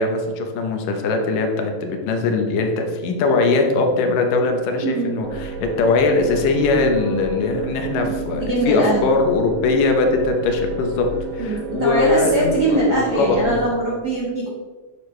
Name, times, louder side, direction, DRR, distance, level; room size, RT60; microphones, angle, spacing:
voice 1, 0.0-11.1 11.3-13.4, left 3 dB, 75° left, 3 dB, 2.4 m, -20 dB
voice 2, 4.8-5.2 8.0-8.1 8.4-9.1 11.4-14.5, right 1 dB, 65° right, -6 dB, 1.0 m, -22 dB
sound 1, 5.2-13.7, right 4 dB, 80° right, 2.1 m, -30 dB
8.5 x 6.4 x 3.2 m, 1.4 s
omnidirectional pair, 4.1 m